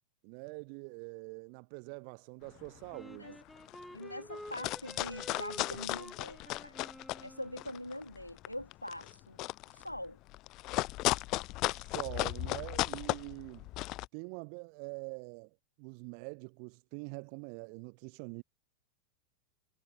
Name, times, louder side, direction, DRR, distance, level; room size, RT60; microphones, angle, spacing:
voice 1, 0.2-3.4 11.8-13.7 14.1-15.5 15.8-18.4, right 40 dB or more, 45° right, 0.9 m, -44 dB
sound 1, 2.6-2.8 3.3-3.4 3.6-4.0 4.3-7.3 7.6-14.1, left 20 dB, 40° left, 0.7 m, -35 dB
Wind instrument woodwind instrument, 2.9-8.0, equal, ahead, 3.6 m, -50 dB
voice 2, 3.9-6.8 7.2-9.4 9.7-10.2, left 1 dB, 90° left, 3.0 m, -43 dB
figure-of-eight pair, 90°, 0 cm